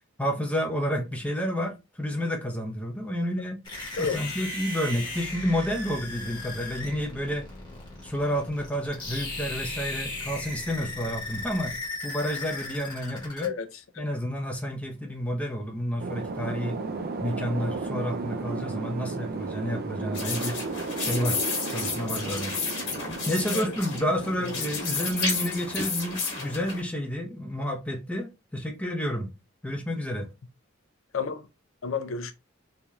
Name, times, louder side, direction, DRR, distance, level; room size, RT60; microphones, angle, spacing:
voice 1, 0.2-3.6 4.0-7.5 8.0-11.7 12.0-13.5 14.0-16.8 17.2-20.6 21.0-21.4 21.7-22.5 23.3-29.3 29.6-30.3, equal, 5° left, 0.6 m, -30 dB
sound 1, 3.6-13.5, left 2 dB, 20° left, 1.1 m, -37 dB
voice 2, 4.0-4.3 13.4-13.7 23.5-23.6 24.4-24.5 31.1-31.5 31.8-32.3, left 6 dB, 70° left, 0.5 m, -30 dB
sound 2, 16.0-25.5, right 4 dB, 45° right, 0.4 m, -34 dB
sound 3, 20.1-26.8, left 4 dB, 55° left, 1.3 m, -32 dB
3.3 x 2.7 x 2.3 m
head